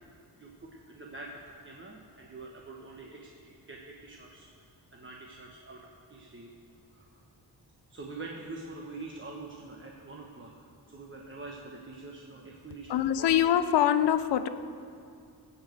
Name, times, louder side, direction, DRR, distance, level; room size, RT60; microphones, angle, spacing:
voice 1, 0.4-6.5 6.9-7.1 7.9-13.3, right 3 dB, 30° right, -1 dB, 1.2 m, -45 dB
voice 2, 12.9-14.5, left 10 dB, 90° left, 13 dB, 0.6 m, -24 dB
15.5 x 5.3 x 7.9 m, 2.5 s
cardioid pair, 100°, 40 cm